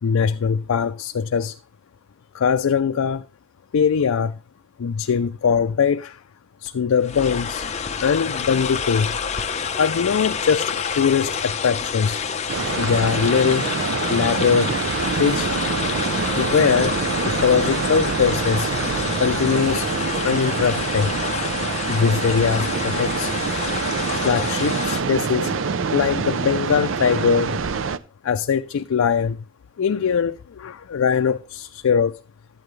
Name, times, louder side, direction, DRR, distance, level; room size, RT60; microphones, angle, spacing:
voice 1, 0.0-1.5 2.3-3.2 3.7-4.4 4.8-6.2 6.6-7.6 8.0-9.1 9.8-12.2 12.8-13.7 14.1-15.5 16.2-17.0 17.2-18.7 19.2-19.9 20.2-21.2 21.9-23.3 24.2-27.9 28.2-29.4 29.8-32.2, left 6 dB, 90° left, 0.4 m, -21 dB
sound 1, 6.7-6.8 7.0-25.0, left 6 dB, 35° left, 0.7 m, -28 dB
sound 2, 12.5-28.0, right 5 dB, 65° right, 0.5 m, -26 dB
12.5 x 8.9 x 3.2 m
head